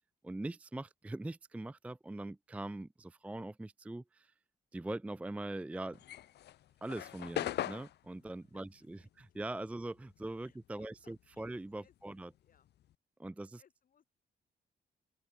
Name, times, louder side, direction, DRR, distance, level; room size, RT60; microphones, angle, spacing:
voice 1, 0.2-4.3 4.7-6.0 6.8-12.3 13.2-13.6, right 2 dB, 10° right, 0.4 m, -42 dB
sound 1, 5.9-10.7 10.9-12.9, left 13 dB, 75° left, 0.5 m, -41 dB
voice 2, 10.4-11.5 11.8-12.7 13.3-14.0, left 8 dB, 55° left, 5.8 m, -69 dB
open air
wide cardioid pair, 165°, 17 cm